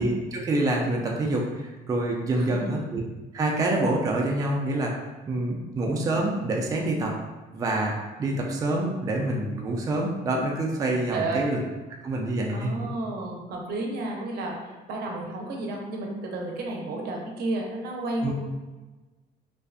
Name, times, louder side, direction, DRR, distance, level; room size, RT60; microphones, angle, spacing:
voice 1, 0.0-3.0 3.3-4.9 5.3-7.1 7.5-11.6 12.0-12.7 18.2-18.3, right 2 dB, 20° right, -1 dB, 0.3 m, -26 dB
voice 2, 2.3-2.7 11.1-11.5 12.5-18.3, right 2 dB, 70° right, 0 dB, 0.6 m, -32 dB
2.5 x 2.3 x 2.3 m, 1.2 s
cardioid pair, 110°, 17 cm